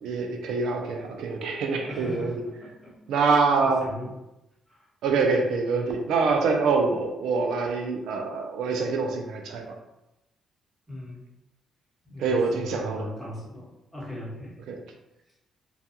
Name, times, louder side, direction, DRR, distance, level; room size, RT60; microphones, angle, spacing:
voice 1, 0.0-2.4 3.1-3.9 5.0-9.7 12.2-13.1 14.7-14.8, right 4 dB, 80° right, 3 dB, 0.4 m, -25 dB
voice 2, 1.6-2.9 3.6-4.1 4.7-4.8 5.1-5.3 10.9-11.2 12.0-14.6, left 1 dB, ahead, -7 dB, 1.1 m, -39 dB
2.3 x 2.2 x 2.8 m, 0.91 s
cardioid pair, 90°, 0 cm